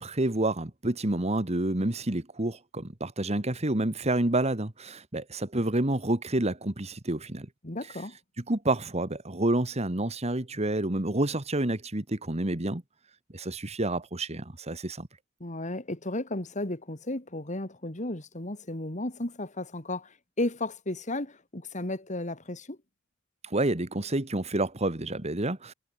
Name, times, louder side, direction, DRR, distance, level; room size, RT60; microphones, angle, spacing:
voice 1, 0.0-7.5 8.5-12.8 13.3-15.1 23.4-25.7, right 1 dB, 35° right, 1.8 m, -29 dB
voice 2, 7.6-8.2 15.4-22.8, left 1 dB, 35° left, 2.6 m, -34 dB
head